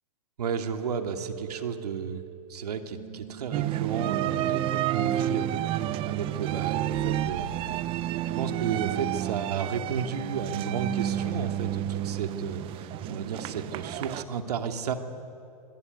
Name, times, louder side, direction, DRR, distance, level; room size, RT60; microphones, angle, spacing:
voice 1, 0.4-2.2 2.5-7.6 8.4-15.0, right 6 dB, 85° right, 5 dB, 2.8 m, -33 dB
sound 1, 0.9-8.8, right 10 dB, 50° right, 2.8 m, -44 dB
sound 2, 3.5-14.2, right 12 dB, 25° right, 0.8 m, -30 dB
27.0 x 21.5 x 9.6 m, 2.5 s
hypercardioid pair, 145°, 20 cm